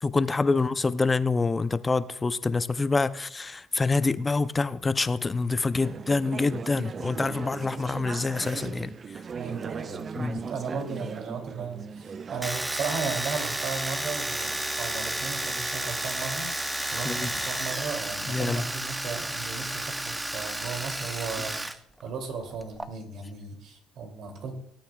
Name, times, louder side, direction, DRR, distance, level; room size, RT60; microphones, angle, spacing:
voice 1, 0.0-9.2 10.2-10.4 17.0-17.5 18.3-18.6, left 3 dB, 25° left, 0.5 m, -26 dB
Conversation / Chatter, 5.8-12.5, right 6 dB, 40° right, 0.4 m, -38 dB
voice 2, 9.3-24.5, right 5 dB, 65° right, 2.8 m, -36 dB
Domestic sounds home sounds, 12.4-21.8 22.0-22.9, right 1 dB, 10° right, 0.8 m, -32 dB
18.5 x 9.1 x 2.4 m
supercardioid pair, 80°, 0 cm